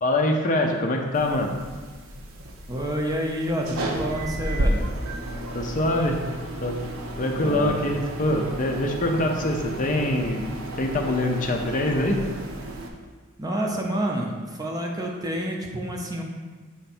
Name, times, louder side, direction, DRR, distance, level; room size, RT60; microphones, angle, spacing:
voice 1, 0.0-1.6 5.5-6.2 6.6-6.8 7.2-10.5 10.8-12.2, left 1 dB, 40° left, 2 dB, 0.5 m, -24 dB
sound 1, 1.1-12.9, right 1 dB, 70° right, 0.7 m, -32 dB
voice 2, 2.7-4.9 7.4-7.9 13.4-16.2, equal, 15° right, 0 dB, 0.6 m, -28 dB
7.1 x 3.3 x 4.3 m, 1.4 s
head